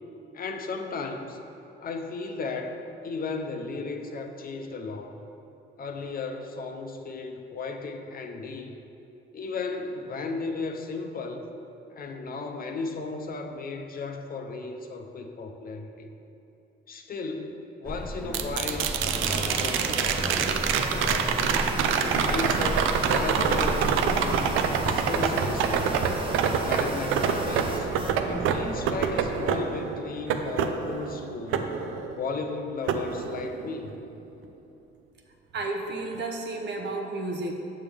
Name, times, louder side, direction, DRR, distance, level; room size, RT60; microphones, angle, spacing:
voice 1, 0.3-1.4 1.8-2.7 3.0-5.2 5.8-8.7 9.3-11.4 11.9-16.1 16.9-21.6 22.0-24.5 24.9-25.9 26.6-27.9 28.3-31.7 32.1-34.0, left 3 dB, 50° left, 5 dB, 0.6 m, -35 dB
sound 1, 17.8-29.5, equal, 5° left, 0.5 m, -36 dB
sound 2, 18.3-32.4 32.9-33.9 36.1-36.2, right 6 dB, 90° right, 0.4 m, -27 dB
sound 3, 19.1-28.2, right 2 dB, 25° right, 0.8 m, -36 dB
voice 2, 35.5-37.5, right 2 dB, 60° right, 3 dB, 0.9 m, -32 dB
7.2 x 6.9 x 3.4 m, 2.9 s
cardioid pair, 90°, 20 cm